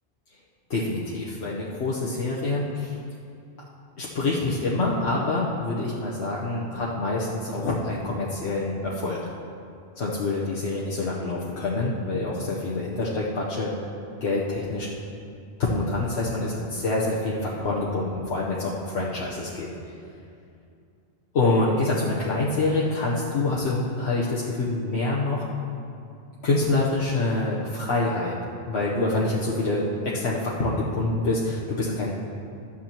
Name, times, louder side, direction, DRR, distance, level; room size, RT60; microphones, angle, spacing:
voice 1, 0.7-2.9 4.0-9.2 10.0-13.7 14.2-14.9 15.6-19.7 21.3-25.4 26.4-28.4 28.7-32.1, left 2 dB, 80° left, -6 dB, 1.2 m, -26 dB
12.5 x 9.7 x 3.0 m, 2.5 s
omnidirectional pair, 1.1 m